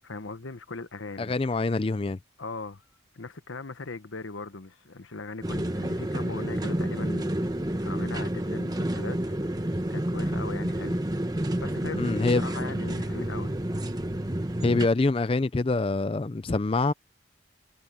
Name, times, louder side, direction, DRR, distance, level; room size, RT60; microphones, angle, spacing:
voice 1, 0.0-1.3 2.4-2.8 3.1-7.3 7.8-11.0 11.6-13.6, left 3 dB, 90° left, 1.2 m, -39 dB
voice 2, 1.2-2.2 12.0-12.4 14.6-16.9, left 3 dB, 30° left, 0.4 m, -25 dB
sound 1, 5.4-14.9, right 1 dB, 20° right, 1.1 m, -29 dB
head